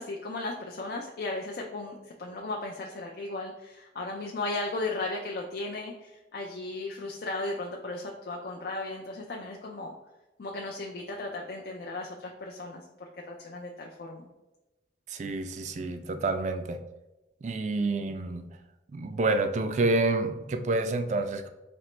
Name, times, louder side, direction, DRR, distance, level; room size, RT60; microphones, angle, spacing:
voice 1, 0.0-9.9 10.4-14.3, left 2 dB, 50° left, -1 dB, 0.4 m, -36 dB
voice 2, 15.1-16.8 17.4-18.4 18.9-21.5, right 2 dB, 40° right, 7 dB, 0.3 m, -28 dB
4.2 x 2.9 x 3.2 m, 1.0 s
head